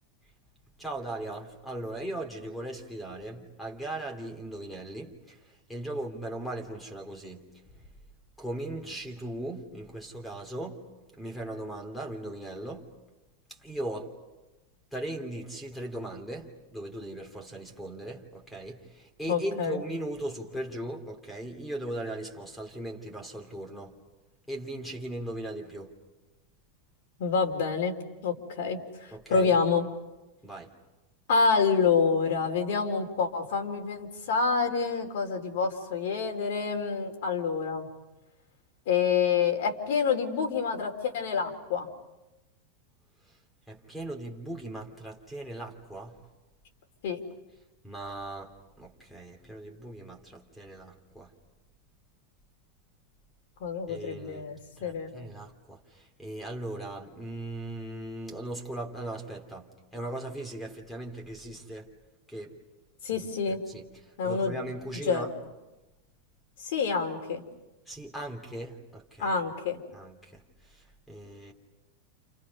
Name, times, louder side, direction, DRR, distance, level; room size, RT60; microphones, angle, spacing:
voice 1, 0.8-7.5 7.7-7.9 8.4-10.8 11.1-12.9 13.5-14.1 14.9-24.0 24.5-26.0 29.1-29.5 30.4-30.7 43.3-43.4 43.7-46.2 47.8-51.3 53.9-54.5 54.8-61.9 62.3-62.6 63.2-63.3 63.7-65.3 67.9-69.4 69.9-71.5, right 1 dB, 5° left, 4 dB, 3.0 m, -38 dB
voice 2, 19.3-19.8 27.2-28.0 28.2-29.9 31.3-37.9 38.9-41.9 47.0-47.2 53.6-55.1 63.0-63.6 64.2-64.6 65.1-65.3 66.6-67.4 69.2-69.8, left 5 dB, 70° left, 3 dB, 3.9 m, -27 dB
29.5 x 29.5 x 5.5 m, 1.1 s
supercardioid pair, 155°, 0 cm